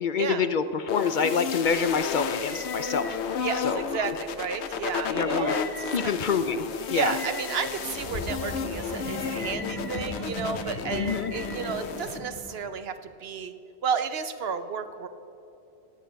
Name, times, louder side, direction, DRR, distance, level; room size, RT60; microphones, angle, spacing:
voice 1, 0.0-3.2 3.6-4.1 5.1-5.5 5.9-7.1 10.9-11.3, left 6 dB, 55° left, 11 dB, 0.6 m, -27 dB
sound 1, 0.9-12.2, left 6 dB, 90° left, 1.0 m, -33 dB
sound 2, 2.0-12.3, left 1 dB, 30° left, 1.4 m, -44 dB
voice 2, 3.4-6.1 6.9-13.5 13.8-15.1, right 6 dB, 70° right, 10 dB, 1.0 m, -32 dB
sound 3, 7.7-12.6, left 2 dB, 75° left, 2.4 m, -37 dB
15.5 x 10.0 x 5.2 m, 2.9 s
omnidirectional pair, 1.1 m